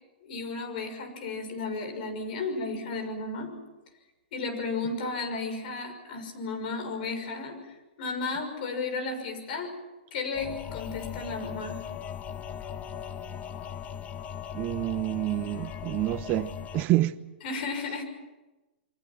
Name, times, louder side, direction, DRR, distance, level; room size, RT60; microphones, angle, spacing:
voice 1, 0.2-3.5 4.3-9.7 10.1-11.8 17.4-18.0, left 3 dB, 55° left, 6.2 m, -34 dB
sound 1, 10.3-16.8, left 8 dB, 25° left, 1.3 m, -38 dB
voice 2, 14.5-17.2, right 16 dB, 35° right, 1.0 m, -28 dB
28.0 x 23.5 x 6.0 m
hypercardioid pair, 125°, 6 cm